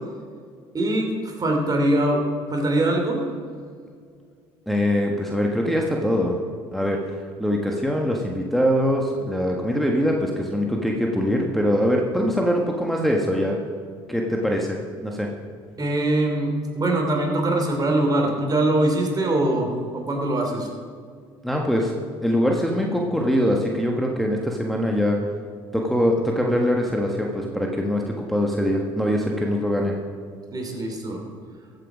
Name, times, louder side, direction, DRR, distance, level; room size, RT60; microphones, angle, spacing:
voice 1, 0.7-2.2 2.5-3.2 15.8-20.7 30.5-31.2, right 1 dB, 35° right, 2 dB, 3.1 m, -22 dB
voice 2, 4.7-6.4 6.7-7.0 7.4-13.6 14.1-15.3 21.4-21.9 22.2-25.2 25.7-30.0, equal, ahead, -1 dB, 1.5 m, -23 dB
14.5 x 7.9 x 5.1 m, 2.1 s
hypercardioid pair, 70°, 12 cm